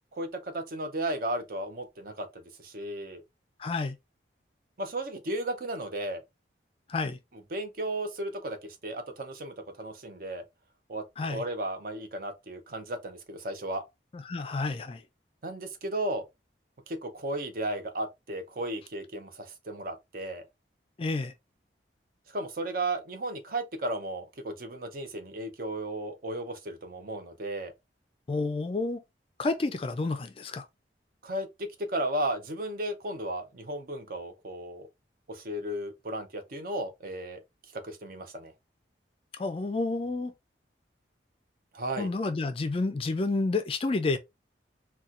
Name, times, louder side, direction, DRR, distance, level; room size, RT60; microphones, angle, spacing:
voice 1, 0.1-3.2 4.8-6.2 7.5-8.6 8.8-10.4 10.9-11.0 11.3-13.8 15.4-16.2 16.9-20.4 22.3-27.7 31.2-34.9 35.3-37.4 37.7-38.5 41.7-42.1, right 1 dB, 50° right, 0.6 m, -34 dB
voice 2, 3.6-4.0 6.9-7.2 11.2-11.4 14.1-15.0 21.0-21.3 28.3-29.0 29.4-30.6 39.4-40.3 42.0-44.2, left 3 dB, 30° left, 0.3 m, -30 dB
4.1 x 2.2 x 2.4 m
head